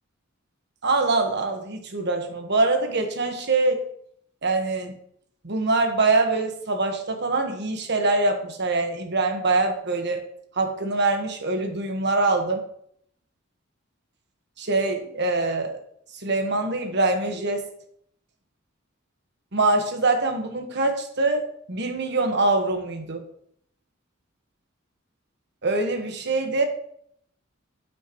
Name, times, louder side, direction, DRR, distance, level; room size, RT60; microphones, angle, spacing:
voice 1, 0.8-3.8 4.4-4.9 5.4-10.2 10.6-12.6 14.6-15.7 16.2-17.6 19.5-23.2 25.6-26.6, right 3 dB, 60° right, 5 dB, 1.3 m, -24 dB
8.9 x 8.3 x 3.0 m, 0.68 s
head